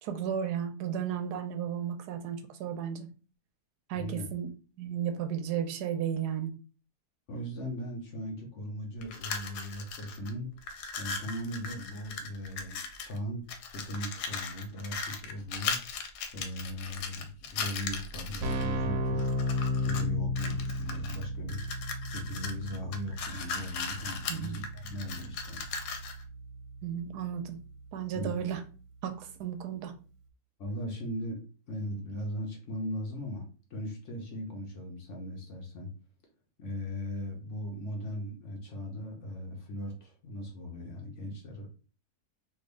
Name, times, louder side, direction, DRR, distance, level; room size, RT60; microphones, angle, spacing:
voice 1, 0.0-3.1 3.9-4.5 4.8-6.5 24.2-24.6 26.8-27.6 27.9-28.6 29.0-29.9, right 9 dB, 90° right, 7 dB, 1.2 m, -34 dB
voice 2, 3.9-4.3 7.3-10.5 11.0-13.5 13.7-15.8 16.3-19.3 19.8-21.8 22.1-25.6 28.1-28.3 30.6-35.9 36.6-41.7, equal, 55° left, 0 dB, 1.0 m, -38 dB
sound 1, 9.0-10.3 10.6-13.2 13.5-18.6 19.2-20.1 20.4-26.2, left 5 dB, 85° left, 1.2 m, -38 dB
Keyboard (musical), 18.1-28.7, left 1 dB, 70° right, 0.9 m, -35 dB
3.4 x 2.3 x 3.3 m, 0.36 s
omnidirectional pair, 1.7 m